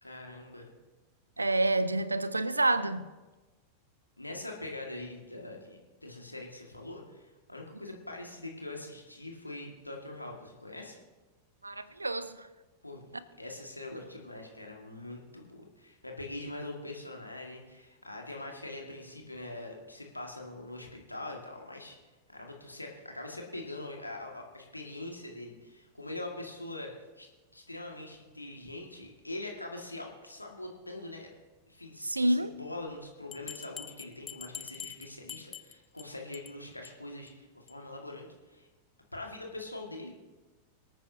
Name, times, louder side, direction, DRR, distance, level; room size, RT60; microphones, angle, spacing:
voice 1, 0.0-0.7 4.2-11.0 12.8-22.0 22.3-27.3 27.5-31.3 31.7-38.7 39.1-40.1, left 2 dB, 85° left, 2.0 m, -43 dB
voice 2, 1.4-3.1 11.6-12.5 32.0-32.5, right 2 dB, 80° right, 0.6 m, -28 dB
Bell, 33.3-36.0 36.3-36.5 36.8-36.9 37.3-37.4 37.7-37.8, left 8 dB, 25° left, 0.5 m, -44 dB
25.0 x 9.0 x 2.8 m
figure-of-eight pair, 90°, 0 cm